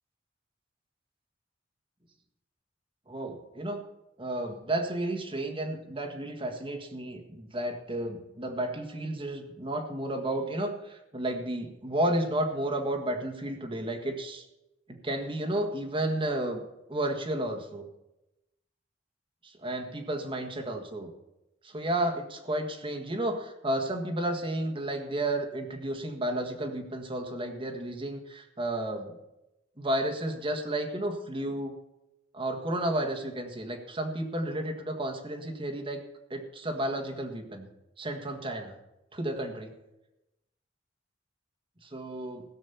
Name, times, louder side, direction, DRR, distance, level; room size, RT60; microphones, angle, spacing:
voice 1, 3.1-3.8 4.2-14.4 14.9-16.6 16.9-17.9 19.4-21.1 21.6-29.2 29.8-31.8 32.3-36.0 36.3-37.7 38.0-38.7 39.1-39.7 41.8-42.4, right 1 dB, 30° right, 3 dB, 1.7 m, -32 dB
16.5 x 6.3 x 6.9 m, 0.94 s
head